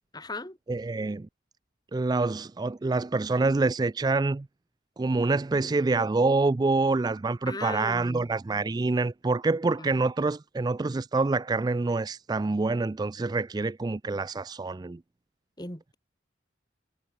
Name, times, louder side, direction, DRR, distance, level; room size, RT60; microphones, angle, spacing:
voice 1, 0.1-0.6 7.5-8.3 9.8-9.9 15.6-15.9, left 2 dB, 20° left, 6.3 m, -37 dB
voice 2, 0.7-1.3 1.9-4.5 5.0-15.0, right 3 dB, 20° right, 0.3 m, -26 dB
head